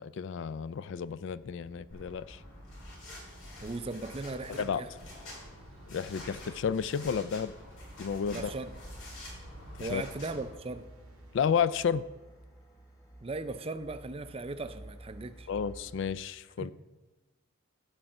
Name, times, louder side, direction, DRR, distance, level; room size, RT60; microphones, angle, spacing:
voice 1, 0.0-2.4 4.5-4.8 5.9-7.5 8.0-8.5 9.8-10.0 11.3-12.0 15.5-16.7, left 7 dB, 60° left, 0.3 m, -31 dB
sound 1, 0.7-16.1, right 1 dB, 15° left, 1.3 m, -54 dB
sound 2, 1.9-10.5, left 1 dB, 85° left, 4.3 m, -48 dB
sound 3, 3.4-11.4, right 2 dB, 80° right, 0.9 m, -60 dB
voice 2, 3.6-4.9 8.3-8.7 9.8-10.9 13.2-15.5 16.6-16.7, right 3 dB, 25° right, 0.4 m, -38 dB
12.5 x 4.7 x 7.8 m
head